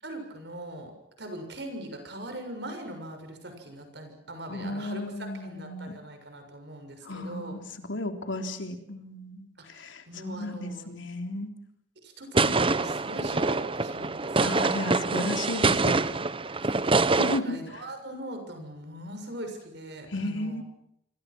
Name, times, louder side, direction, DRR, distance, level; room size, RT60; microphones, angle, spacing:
voice 1, 0.0-0.9 1.2-7.5 9.7-10.9 12.0-14.7 16.6-20.6, right 1 dB, 60° right, 6 dB, 6.8 m, -41 dB
voice 2, 4.5-6.0 7.0-7.6 7.9-11.5 14.4-16.0 17.2-17.8 20.1-20.6, left 1 dB, 90° left, 6 dB, 3.5 m, -34 dB
sound 1, 12.3-17.4, right 3 dB, 30° right, 0.9 m, -25 dB
27.0 x 25.5 x 6.2 m, 0.75 s
head